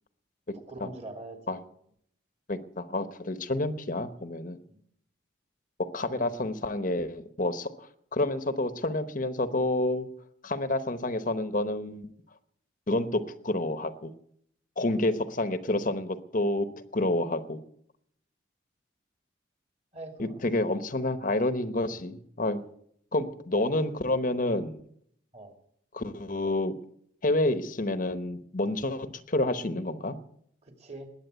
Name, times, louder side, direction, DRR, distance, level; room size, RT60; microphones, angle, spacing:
voice 1, 0.7-1.6 4.7-4.8 6.1-6.3 14.9-15.1 19.9-20.4 23.5-23.6 25.3-25.5 30.6-31.1, right 2 dB, 35° right, 5 dB, 2.6 m, -43 dB
voice 2, 2.5-4.6 5.9-10.1 10.4-12.1 12.9-14.1 14.8-16.7 16.9-17.6 20.2-22.7 23.1-24.8 25.9-26.7 27.2-30.2, left 2 dB, 40° left, 11 dB, 0.9 m, -29 dB
20.5 x 8.6 x 8.0 m, 0.68 s
head